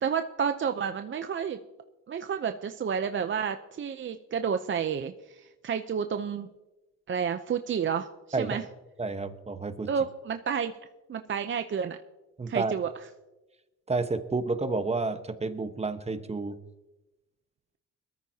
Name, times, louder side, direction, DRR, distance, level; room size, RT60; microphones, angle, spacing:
voice 1, 0.0-1.6 2.1-6.5 7.1-8.6 9.9-10.7 11.1-12.0 12.5-12.9, right 7 dB, 40° right, 8 dB, 0.7 m, -30 dB
voice 2, 9.0-9.9 12.4-12.7 13.9-16.6, right 3 dB, 20° right, 9 dB, 1.2 m, -30 dB
21.5 x 13.5 x 2.9 m, 1.1 s
cardioid pair, 90°, 30 cm